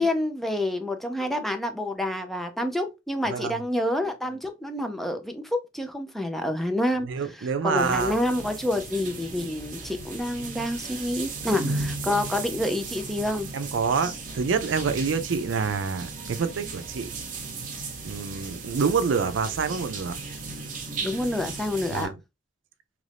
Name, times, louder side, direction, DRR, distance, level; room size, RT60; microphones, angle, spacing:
voice 1, 0.0-7.1 7.3-13.5 21.0-22.1, left 1 dB, ahead, 0.4 m, -28 dB
voice 2, 7.1-8.2 12.1-12.2 13.5-17.1 18.0-20.1 21.9-22.1, right 5 dB, 85° right, 0.4 m, -27 dB
sound 1, 7.8-22.1, right 3 dB, 45° right, 0.8 m, -36 dB
3.0 x 2.5 x 3.3 m
head